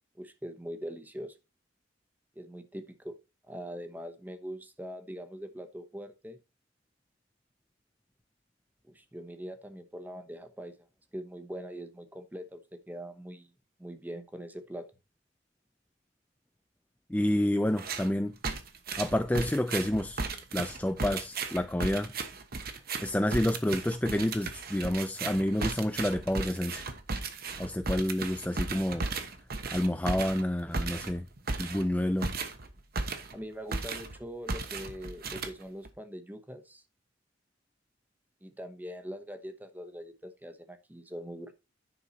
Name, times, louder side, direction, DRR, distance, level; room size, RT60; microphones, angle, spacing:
voice 1, 0.2-1.3 2.3-3.1 3.5-6.4 8.8-10.7 11.1-12.6 12.9-13.5 13.8-14.9 33.3-36.8 38.4-41.5, equal, 10° right, 1.0 m, -42 dB
voice 2, 17.1-18.3 19.0-22.1 23.0-26.9 27.6-29.1 29.7-31.3 31.6-32.3, left 1 dB, 10° left, 0.4 m, -29 dB
sound 1, 17.8-18.1 18.4-33.4 33.7-34.2 34.5-35.9, right 3 dB, 55° right, 1.2 m, -35 dB
10.0 x 5.6 x 4.2 m
head